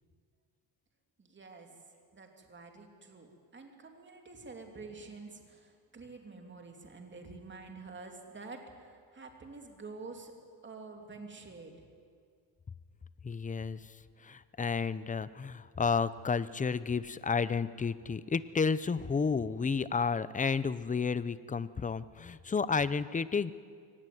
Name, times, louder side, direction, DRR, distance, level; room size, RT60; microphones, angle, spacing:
voice 1, 1.2-1.8 2.1-10.3 10.6-11.9, right 3 dB, 25° right, 3 dB, 2.9 m, -48 dB
voice 2, 13.2-13.8 14.2-23.5, left 5 dB, 20° left, 16 dB, 0.7 m, -31 dB
23.0 x 17.5 x 9.4 m, 2.1 s
cardioid pair, 110°, 42 cm